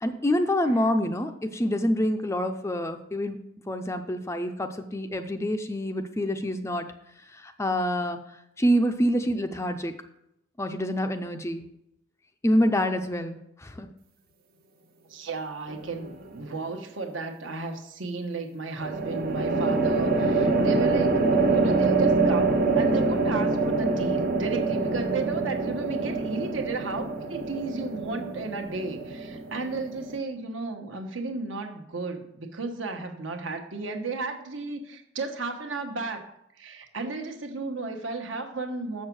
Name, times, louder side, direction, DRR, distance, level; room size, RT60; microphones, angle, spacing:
voice 1, 0.0-3.4 3.7-6.9 7.3-8.2 8.6-9.9 10.6-11.6 12.4-13.9, equal, 15° left, 7 dB, 0.5 m, -26 dB
voice 2, 15.1-36.3 36.6-39.0, right 3 dB, 65° right, 5 dB, 1.1 m, -34 dB
sound 1, 15.7-16.3 18.8-30.2, right 3 dB, 45° right, 0.8 m, -25 dB
7.0 x 6.4 x 6.1 m, 0.79 s
head